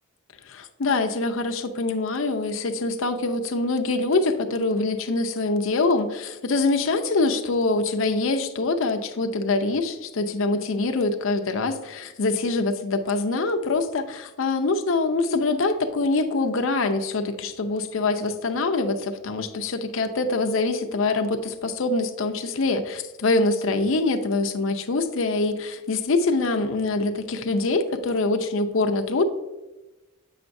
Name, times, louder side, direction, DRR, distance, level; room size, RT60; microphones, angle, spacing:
voice 1, 0.5-29.2, left 3 dB, 65° left, 6 dB, 0.6 m, -24 dB
8.6 x 5.8 x 2.6 m, 1.1 s
head